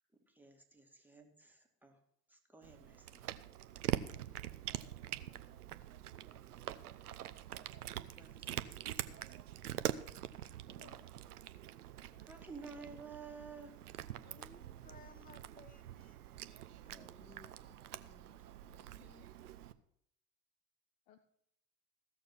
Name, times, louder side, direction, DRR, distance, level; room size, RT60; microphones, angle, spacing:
voice 1, 0.3-2.0 2.3-3.3 7.8-9.3 12.2-13.8 16.9-18.4, right 4 dB, 5° right, 2 dB, 2.3 m, -54 dB
Cat, 2.6-19.7, right 12 dB, 80° right, 0.7 m, -44 dB
voice 2, 10.4-11.1 18.7-19.3 21.1-21.3, left 10 dB, 55° left, 10 dB, 1.0 m, -65 dB
voice 3, 14.2-16.2, left 4 dB, 20° left, 11 dB, 1.2 m, -60 dB
15.5 x 6.7 x 5.9 m, 0.73 s
hypercardioid pair, 70°, 45 cm